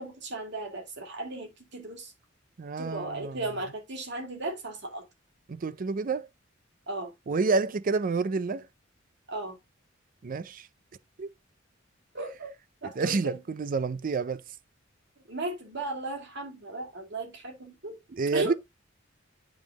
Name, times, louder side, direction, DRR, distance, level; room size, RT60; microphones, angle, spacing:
voice 1, 0.0-2.1 2.8-5.0 6.9-7.1 9.3-9.6 12.1-12.5 12.8-13.4 15.3-18.0 18.3-18.5, right 2 dB, 60° right, 2.7 m, -36 dB
voice 2, 2.6-3.4 5.5-6.3 7.3-8.7 10.2-10.7 11.2-11.3 13.0-14.4 18.1-18.5, right 4 dB, 45° right, 0.4 m, -29 dB
9.3 x 5.3 x 2.9 m
head